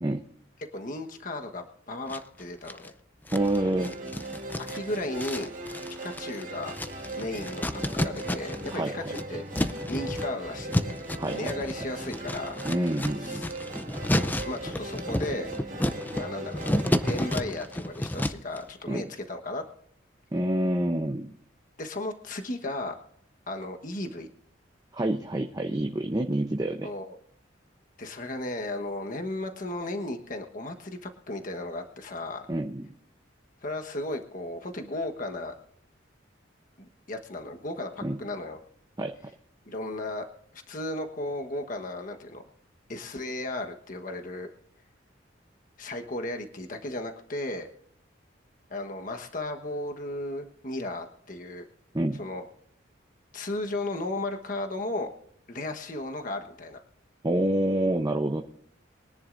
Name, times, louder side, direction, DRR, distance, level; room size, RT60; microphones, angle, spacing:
voice 1, 0.7-2.9 4.6-5.5 6.0-6.7 7.2-9.4 9.9-11.0 11.3-12.9 13.2-13.5 14.4-15.5 16.1-16.7 17.0-19.6 21.8-22.9 23.5-24.3 26.8-27.2 28.0-32.5 33.6-35.5 36.8-38.6 39.7-40.3 40.5-42.4 42.9-44.5 45.8-47.7 48.7-51.7 52.2-52.4 53.3-55.1 55.5-56.8, left 2 dB, 45° left, 4 dB, 1.3 m, -35 dB
sound 1, 2.1-2.9 3.3-8.8 9.0-18.6, left 1 dB, 10° left, 0.5 m, -31 dB
voice 2, 3.3-3.9 8.7-9.1 11.2-11.5 12.6-13.4 18.9-19.0 20.3-21.3 24.9-26.9 32.5-32.9 38.0-38.2 39.0-39.1 51.9-52.2 57.2-58.4, right 1 dB, 20° right, 4 dB, 0.7 m, -27 dB
sound 2, 3.3-18.6, right 1 dB, 40° right, 1.9 m, -39 dB
23.0 x 10.5 x 2.6 m, 0.65 s
head